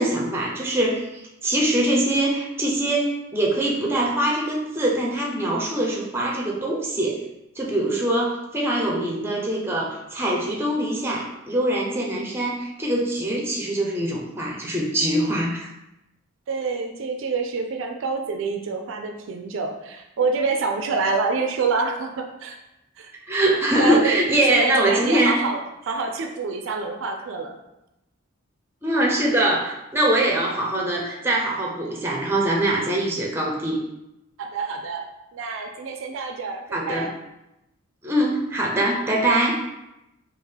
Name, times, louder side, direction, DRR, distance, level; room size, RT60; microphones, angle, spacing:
voice 1, 0.0-7.2 7.6-15.7 23.3-25.4 28.8-33.8 36.7-37.1 38.0-39.6, right 1 dB, 10° right, -2 dB, 0.5 m, -23 dB
voice 2, 16.5-22.6 23.0-23.1 23.7-24.2 24.5-27.6 34.4-35.0 35.3-37.1, right 4 dB, 65° right, 4 dB, 0.4 m, -27 dB
3.6 x 2.4 x 3.3 m, 0.90 s
head